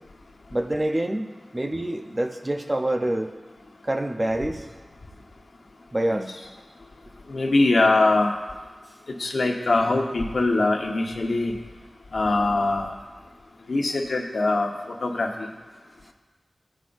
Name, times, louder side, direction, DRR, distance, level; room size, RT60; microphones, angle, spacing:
voice 1, 0.5-3.3 3.8-4.7 5.9-6.3, right 1 dB, 25° right, 5 dB, 0.7 m, -26 dB
voice 2, 7.3-8.3 9.2-11.5 12.1-12.9 13.7-14.7 15.0-15.5, left 2 dB, 80° left, 0 dB, 1.1 m, -22 dB
15.0 x 5.5 x 2.6 m, 1.3 s
wide cardioid pair, 75°, 0 cm